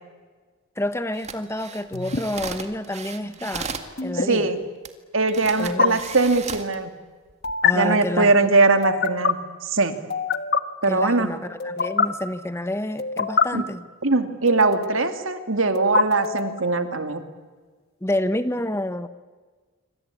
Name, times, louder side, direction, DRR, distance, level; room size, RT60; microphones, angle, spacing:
voice 1, 0.8-3.7 4.0-4.5 5.6-6.0 7.6-8.3 10.9-13.8 18.0-19.1, left 1 dB, 10° left, 11 dB, 1.0 m, -28 dB
sound 1, 1.1-3.9 4.8-4.9 5.3-6.7 7.3-7.5, right 5 dB, 30° right, 1.9 m, -35 dB
sound 2, 1.9-2.2 4.0-4.2 5.6-5.9 7.4-7.7 8.8-9.3 10.1-10.6 11.6-12.1 13.0-13.4 14.5-15.0 15.7-16.6, left 6 dB, 50° left, 1.4 m, -24 dB
voice 2, 4.1-4.6 5.1-6.9 7.7-10.0 10.8-11.3 13.5-13.6 14.0-17.2, right 3 dB, 65° right, 8 dB, 2.4 m, -21 dB
27.0 x 25.5 x 8.5 m, 1.4 s
head